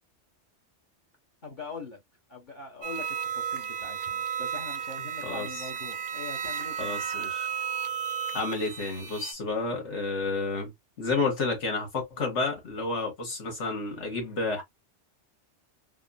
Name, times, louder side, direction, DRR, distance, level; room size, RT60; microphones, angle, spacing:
voice 1, 1.4-2.0 2.3-3.0 3.3-7.1, left 3 dB, 45° left, 1.0 m, -42 dB
sound 1, 2.8-9.3, right 8 dB, 50° right, 0.6 m, -33 dB
voice 2, 5.2-5.6 6.8-7.5 8.3-10.7 11.0-14.6, left 3 dB, 85° left, 1.7 m, -30 dB
3.6 x 2.0 x 2.4 m
omnidirectional pair, 1.2 m